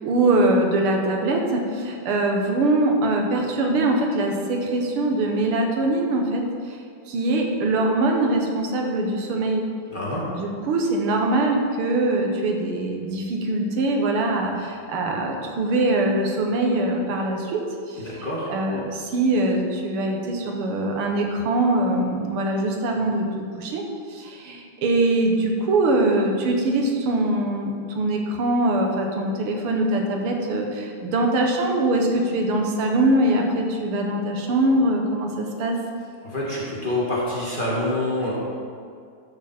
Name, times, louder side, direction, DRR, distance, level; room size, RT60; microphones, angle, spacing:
voice 1, 0.0-6.4 7.1-9.7 10.3-23.8 24.1-35.8, right 2 dB, 90° right, 2 dB, 2.0 m, -23 dB
voice 2, 9.9-10.3 18.0-18.5 36.2-38.3, left 1 dB, 25° left, -6 dB, 1.8 m, -26 dB
12.5 x 6.6 x 4.3 m, 2.3 s
omnidirectional pair, 2.3 m